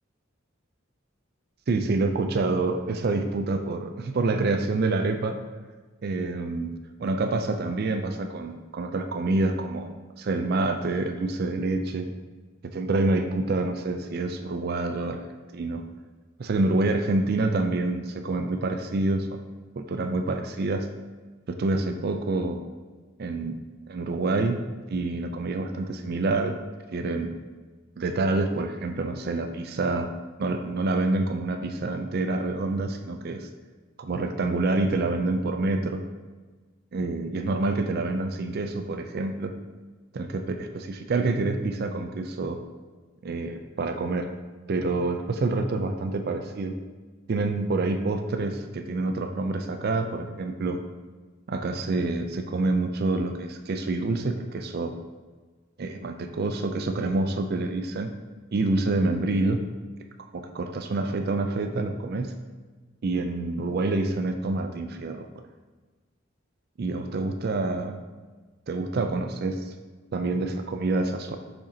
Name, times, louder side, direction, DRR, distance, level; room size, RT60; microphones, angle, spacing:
voice 1, 1.7-5.4 6.0-6.7 7.0-12.1 12.7-15.2 15.5-15.8 16.4-19.4 19.8-20.9 21.5-22.6 23.2-23.6 23.9-26.6 26.9-27.3 28.0-30.1 30.4-33.5 34.0-36.0 36.9-39.6 40.1-42.6 43.2-44.3 44.7-46.7 47.3-50.8 51.5-54.9 55.8-58.1 58.5-59.6 60.3-62.3 63.0-65.3 66.8-68.0 68.7-69.7 70.1-71.4, right 2 dB, 50° right, 6 dB, 0.4 m, -27 dB
7.2 x 5.0 x 2.8 m, 1.3 s
head